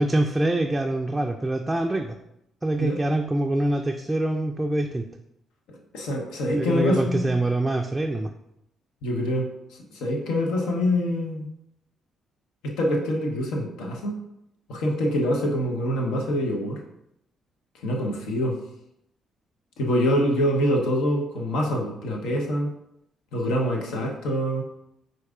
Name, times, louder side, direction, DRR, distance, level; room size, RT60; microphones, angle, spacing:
voice 1, 0.0-2.2 2.6-5.1 6.5-8.3, right 1 dB, 15° right, 3 dB, 0.4 m, -25 dB
voice 2, 5.9-7.3 9.0-11.4 12.6-14.2 14.7-16.8 17.8-18.6 19.8-22.7 23.3-24.6, equal, 80° left, 1 dB, 0.8 m, -25 dB
4.6 x 2.6 x 3.6 m, 0.83 s
hypercardioid pair, 55°, 0 cm